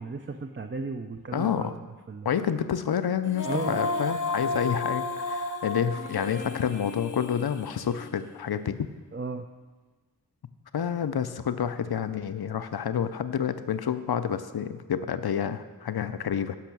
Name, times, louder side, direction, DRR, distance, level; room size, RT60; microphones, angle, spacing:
voice 1, 0.0-1.8 2.1-2.3 3.4-3.8 9.1-9.5, right 4 dB, 35° right, 6 dB, 0.5 m, -35 dB
voice 2, 1.3-1.7 2.2-8.9 10.7-16.6, left 8 dB, 85° left, 11 dB, 0.6 m, -29 dB
Female singing, 3.2-8.4, left 3 dB, 55° left, 0.8 m, -33 dB
10.5 x 6.1 x 6.0 m, 1.3 s
wide cardioid pair, 60°, 37 cm